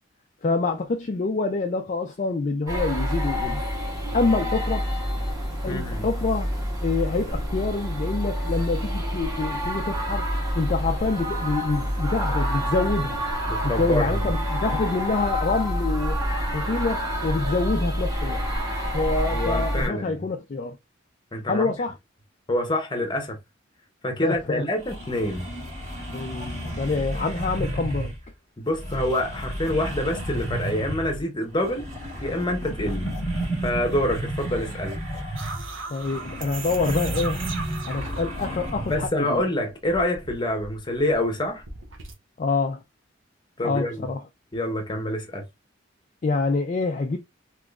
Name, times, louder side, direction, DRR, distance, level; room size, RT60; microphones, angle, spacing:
voice 1, 0.4-3.6 4.1-4.9 5.6-6.5 6.8-10.3 10.6-13.2 13.6-16.2 16.5-18.5 18.9-20.8 21.5-21.9 24.2-24.6 26.1-28.1 35.9-37.5 37.8-39.4 42.4-42.8 43.6-44.2 46.2-47.2, left 3 dB, 40° left, 0.4 m, -26 dB
sound 1, 2.7-19.9, equal, 20° right, 1.8 m, -27 dB
voice 2, 5.7-6.1 13.5-14.2 19.3-20.2 21.3-21.7 22.5-23.4 24.0-25.5 28.6-31.9 32.2-33.2 33.6-35.0 38.9-41.6 43.6-44.1 44.5-45.4, left 1 dB, 25° left, 0.8 m, -26 dB
sound 2, 24.4-24.5 24.8-28.2 28.7-31.2 31.5-39.1, right 1 dB, 35° right, 2.1 m, -32 dB
sound 3, 35.4-39.4 39.7-42.1, right 4 dB, 75° right, 0.9 m, -38 dB
3.6 x 3.0 x 2.3 m
head